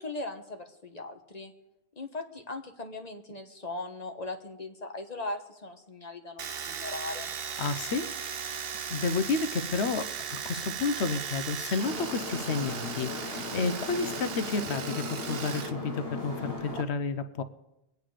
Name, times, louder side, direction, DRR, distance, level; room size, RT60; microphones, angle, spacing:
voice 1, 0.0-1.5 2.0-7.3, left 2 dB, 40° left, 5 dB, 1.4 m, -39 dB
Domestic sounds home sounds, 6.4-15.7 16.0-16.8, right 7 dB, 65° right, 1.0 m, -37 dB
voice 2, 7.6-8.6 8.9-17.4, left 4 dB, 90° left, 11 dB, 1.1 m, -31 dB
sound 1, 11.8-16.8, left 2 dB, 65° left, 3.6 m, -37 dB
23.0 x 9.4 x 5.0 m, 0.90 s
omnidirectional pair, 1.1 m